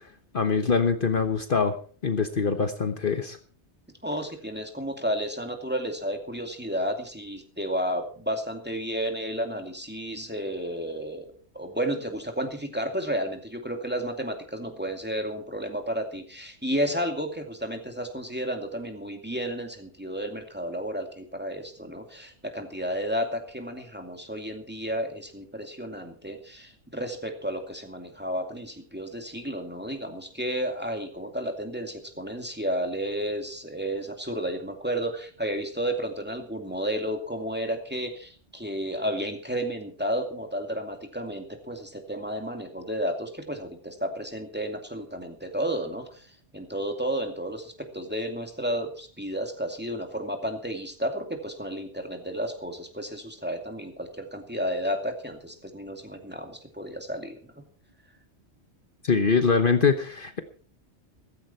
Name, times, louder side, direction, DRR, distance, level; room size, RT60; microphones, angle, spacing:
voice 1, 0.3-1.8 2.0-3.4 59.0-60.4, left 5 dB, 50° left, 8 dB, 1.2 m, -23 dB
voice 2, 4.0-11.3 11.5-46.3 46.5-57.6, equal, 10° right, 4 dB, 2.5 m, -32 dB
15.0 x 14.5 x 4.4 m, 0.42 s
omnidirectional pair, 1.2 m